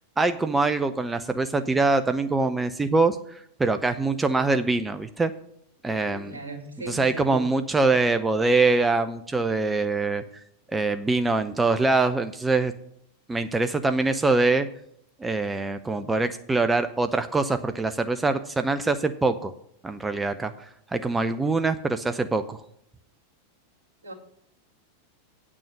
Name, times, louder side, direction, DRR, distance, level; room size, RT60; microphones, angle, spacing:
voice 1, 0.2-5.3 5.8-6.4 6.9-10.2 10.7-12.7 13.3-14.7 15.2-19.5 19.8-22.6, right 3 dB, 10° right, 0.5 m, -24 dB
voice 2, 6.0-7.5 24.0-24.1, right 2 dB, 70° right, 2.2 m, -37 dB
8.5 x 6.2 x 7.6 m
figure-of-eight pair, 90°, 0 cm